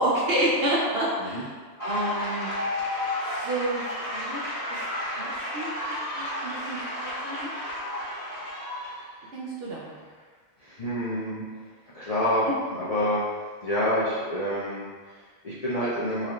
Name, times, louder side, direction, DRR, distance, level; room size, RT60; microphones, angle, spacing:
voice 1, 0.0-1.5 1.8-2.5 3.3-4.8 5.2-6.8 7.0-7.5 9.3-9.9, right 1 dB, 60° right, -5 dB, 0.7 m, -29 dB
sound 1, 1.8-9.0, left 1 dB, 15° left, 1.3 m, -32 dB
voice 2, 8.9-9.3 10.6-11.5 11.9-13.3 13.6-16.3, equal, 40° left, -10 dB, 0.5 m, -28 dB
4.2 x 2.6 x 3.0 m, 1.5 s
omnidirectional pair, 1.4 m